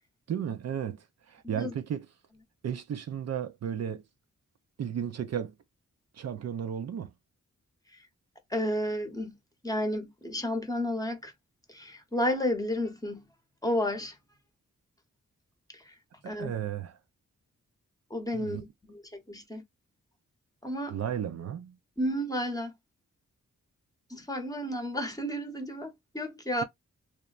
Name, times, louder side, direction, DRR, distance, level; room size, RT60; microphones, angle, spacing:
voice 1, 0.3-2.1 2.6-4.0 4.8-5.5 6.1-7.1 16.2-16.9 18.3-18.7 20.9-21.8, right 8 dB, 60° right, 0.4 m, -34 dB
voice 2, 8.5-9.4 9.6-11.3 11.7-13.2 13.6-14.1 16.3-16.5 18.1-19.6 20.6-21.0 22.0-22.7 24.1-26.6, left 1 dB, 10° left, 0.8 m, -32 dB
3.0 x 2.1 x 2.4 m
wide cardioid pair, 100°, 30 cm